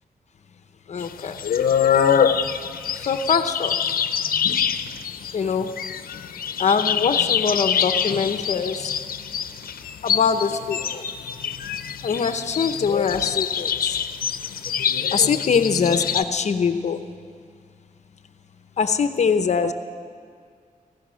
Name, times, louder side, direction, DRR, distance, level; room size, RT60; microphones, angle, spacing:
voice 1, 0.9-1.4 2.9-3.8 5.3-5.7 6.6-8.9 10.0-11.0 12.0-14.0 15.1-17.0 18.8-19.7, left 6 dB, 50° left, 9 dB, 0.8 m, -23 dB
sound 1, 1.0-16.2, left 8 dB, 85° left, 0.8 m, -25 dB
24.5 x 16.5 x 6.3 m, 2.2 s
wide cardioid pair, 170°, 15 cm